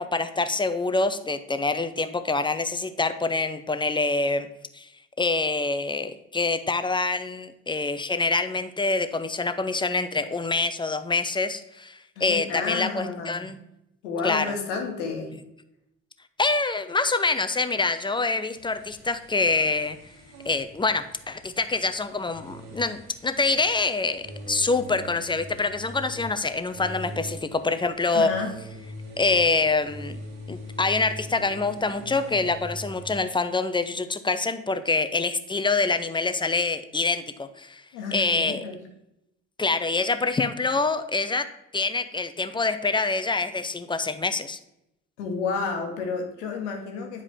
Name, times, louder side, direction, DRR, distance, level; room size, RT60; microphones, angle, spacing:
voice 1, 0.0-4.5 4.7-4.9 5.2-13.6 14.2-14.5 16.4-20.0 20.4-28.3 29.2-30.2 30.5-37.8 38.1-38.7 39.6-41.5 41.7-44.6, left 3 dB, 15° left, 11 dB, 0.7 m, -26 dB
voice 2, 12.2-13.4 14.0-15.4 28.1-28.5 37.9-38.8 45.2-47.2, left 4 dB, 75° left, 2 dB, 1.5 m, -31 dB
sound 1, 18.5-33.2, equal, 75° right, 2.0 m, -42 dB
9.7 x 4.9 x 3.6 m, 0.85 s
figure-of-eight pair, 50°, 35 cm